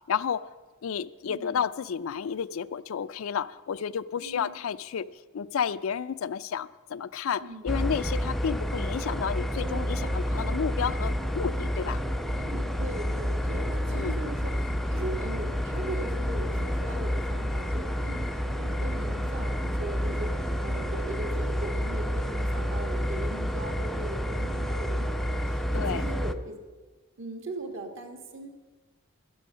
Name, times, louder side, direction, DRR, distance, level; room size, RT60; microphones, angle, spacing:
voice 1, 0.1-0.5 0.8-12.0 13.9-14.1 25.7-26.0, left 7 dB, 85° left, 15 dB, 0.4 m, -31 dB
voice 2, 1.3-1.6 4.2-4.6 7.4-7.8 12.4-26.6 27.2-28.5, right 2 dB, 65° right, 4 dB, 1.6 m, -39 dB
sound 1, 7.7-26.3, equal, ahead, 0.3 m, -29 dB
sound 2, 9.6-22.1 22.4-22.5, right 2 dB, 40° right, 0.9 m, -47 dB
12.5 x 10.5 x 5.6 m, 1.3 s
head